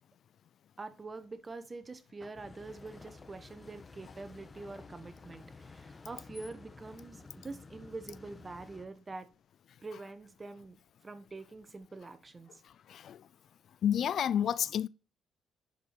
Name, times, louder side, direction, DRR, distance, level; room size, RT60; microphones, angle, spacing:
voice 1, 0.8-9.3 9.8-10.8 11.0-12.5, right 3 dB, 25° right, 1.3 m, -45 dB
sound 1, 2.3-8.9, left 4 dB, 30° left, 1.2 m, -52 dB
voice 2, 12.6-13.3 13.8-14.9, left 9 dB, 65° left, 0.4 m, -30 dB
11.0 x 5.0 x 4.4 m
cardioid pair, 90°, 0 cm